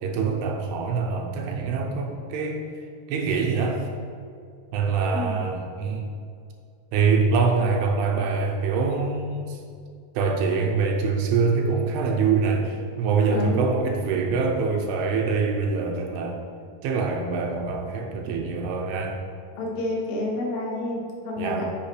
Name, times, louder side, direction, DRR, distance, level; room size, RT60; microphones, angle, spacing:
voice 1, 0.0-2.6 3.1-3.9 4.7-6.1 6.9-9.6 10.1-16.4 16.8-19.2 21.4-21.7, right 4 dB, 85° right, 1 dB, 2.7 m, -24 dB
voice 2, 13.3-13.6 19.5-21.7, left 2 dB, 70° left, -2 dB, 2.8 m, -29 dB
8.5 x 5.9 x 3.2 m, 2.3 s
omnidirectional pair, 4.6 m